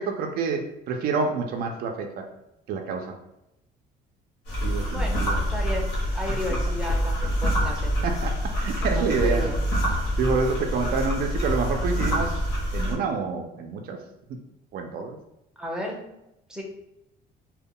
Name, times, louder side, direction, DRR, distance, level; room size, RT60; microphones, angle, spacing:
voice 1, 0.0-2.2 2.7-3.1 4.6-5.3 8.0-9.5 10.2-12.4 12.7-14.0 14.7-15.2, right 4 dB, 60° right, 3 dB, 0.4 m, -28 dB
sound 1, 4.4-12.9, equal, 85° left, 0.9 m, -26 dB
voice 2, 4.9-8.1 8.8-9.6 15.6-16.2 16.5-16.6, left 1 dB, 5° right, -1 dB, 0.6 m, -34 dB
2.1 x 2.1 x 3.6 m, 0.87 s
cardioid pair, 110°, 17 cm